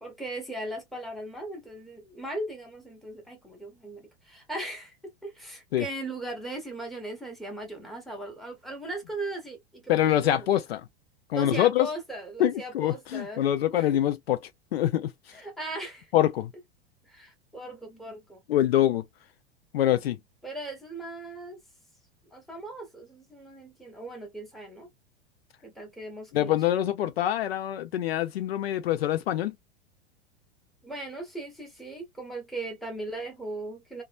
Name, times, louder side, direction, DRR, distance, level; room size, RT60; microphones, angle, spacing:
voice 1, 0.0-5.0 5.2-10.5 11.3-13.4 13.7-14.0 15.3-16.1 17.1-18.4 20.4-21.6 22.3-24.9 25.6-26.6 30.8-34.0, right 2 dB, ahead, 1.0 m, -38 dB
voice 2, 9.9-10.9 11.3-11.9 12.4-14.4 14.7-15.1 16.1-16.5 18.5-19.0 19.7-20.2 26.3-29.5, left 12 dB, 65° left, 0.5 m, -25 dB
2.9 x 2.2 x 2.3 m
figure-of-eight pair, 95°, 32 cm